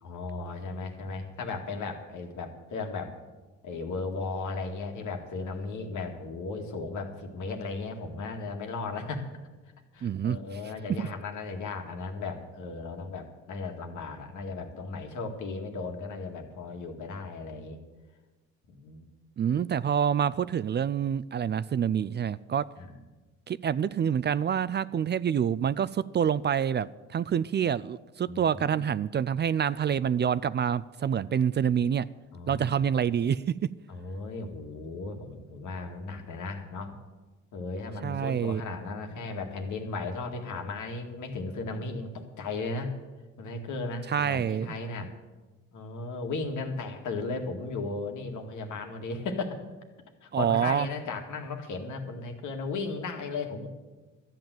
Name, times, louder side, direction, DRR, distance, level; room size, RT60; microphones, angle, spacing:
voice 1, 0.0-3.1 3.6-9.3 9.9-17.8 18.7-19.1 22.8-23.0 28.3-28.9 31.6-31.7 32.3-32.8 33.9-37.0 37.5-42.9 43.4-45.1 45.7-49.6 50.2-53.7, left 3 dB, 80° left, 4 dB, 2.1 m, -36 dB
voice 2, 10.0-10.4 11.0-11.1 19.4-22.7 23.5-32.1 32.5-33.5 38.0-38.6 44.1-44.8 50.3-50.9, right 8 dB, 35° right, 18 dB, 0.4 m, -27 dB
13.0 x 9.0 x 7.8 m, 1.2 s
cardioid pair, 90°, 30 cm